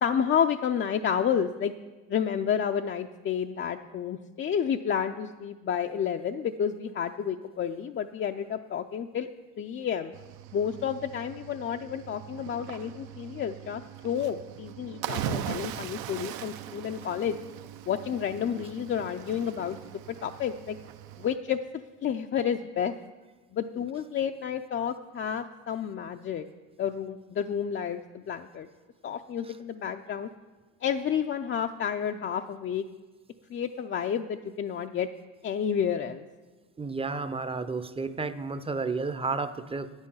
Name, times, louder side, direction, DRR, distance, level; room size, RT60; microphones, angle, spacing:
voice 1, 0.0-1.7 2.1-9.3 9.6-10.1 10.5-17.4 17.9-19.8 20.1-20.8 21.2-21.6 22.0-22.9 23.5-26.4 26.8-28.7 29.0-30.3 30.8-32.8 33.5-35.1 35.4-36.2, left 8 dB, 35° left, 5 dB, 0.4 m, -30 dB
Cricket / Waves surf, 10.1-21.4, right 10 dB, 75° right, 0.7 m, -40 dB
voice 2, 36.8-39.9, right 4 dB, 15° right, 12 dB, 0.6 m, -32 dB
9.8 x 8.9 x 5.5 m, 1.3 s
supercardioid pair, 85°, 37 cm